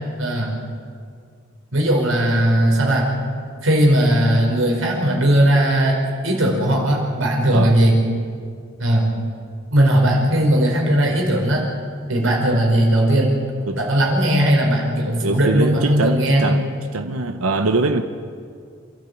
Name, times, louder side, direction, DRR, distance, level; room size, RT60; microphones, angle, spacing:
voice 1, 0.2-0.5 1.7-3.1 3.6-6.0 6.2-7.9 8.8-9.1 9.7-11.6 12.1-13.3 13.8-16.5, right 1 dB, 70° right, -1 dB, 5.1 m, -17 dB
voice 2, 15.2-18.0, right 3 dB, 90° right, 7 dB, 1.0 m, -22 dB
28.0 x 12.5 x 8.4 m, 2.2 s
head